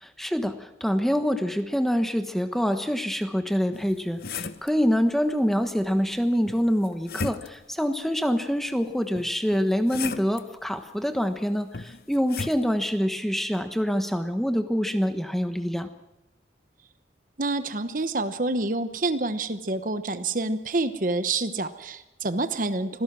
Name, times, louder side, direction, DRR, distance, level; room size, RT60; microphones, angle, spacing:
voice 1, 0.0-15.9, equal, ahead, 8 dB, 1.2 m, -26 dB
sound 1, 3.7-4.8 6.5-7.7 9.2-10.4 11.7-12.6, left 4 dB, 55° left, 0.9 m, -35 dB
voice 2, 17.4-23.0, right 2 dB, 50° right, 11 dB, 1.1 m, -27 dB
25.5 x 16.5 x 6.1 m, 0.94 s
head